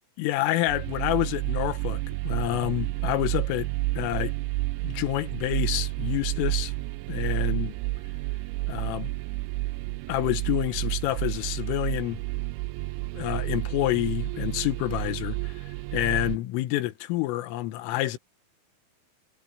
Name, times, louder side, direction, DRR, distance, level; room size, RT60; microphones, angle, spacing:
voice 1, 0.2-3.7 4.0-4.3 4.8-6.7 7.1-7.8 8.7-9.1 10.1-12.2 13.1-18.2, left 16 dB, 80° left, 3.7 m, -28 dB
sound 1, 0.7-16.4, right 20 dB, 90° right, 2.7 m, -30 dB
omnidirectional pair, 5.9 m